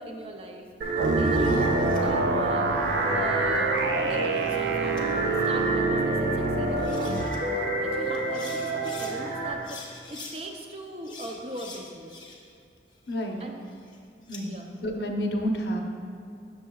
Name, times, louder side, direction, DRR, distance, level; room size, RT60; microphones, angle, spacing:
voice 1, 0.0-2.7 3.1-5.2 5.4-9.8 10.1-12.1 13.4-13.7 14.4-14.8, right 1 dB, 35° right, 2 dB, 0.5 m, -39 dB
sound 1, 0.8-9.5, right 2 dB, 55° right, 1.1 m, -29 dB
sound 2, 1.0-2.0 3.6-4.6 5.0-5.1 6.4-6.5 6.8-7.4 8.1-9.1 9.6-10.4 11.0-12.6 12.9-14.4, left 3 dB, 25° left, 0.6 m, -45 dB
sound 3, 1.0-7.2, right 3 dB, 85° right, 0.5 m, -27 dB
voice 2, 13.1-13.4 14.3-14.5 14.8-15.8, equal, 70° left, 2 dB, 0.6 m, -29 dB
8.0 x 6.4 x 2.3 m, 2.4 s
head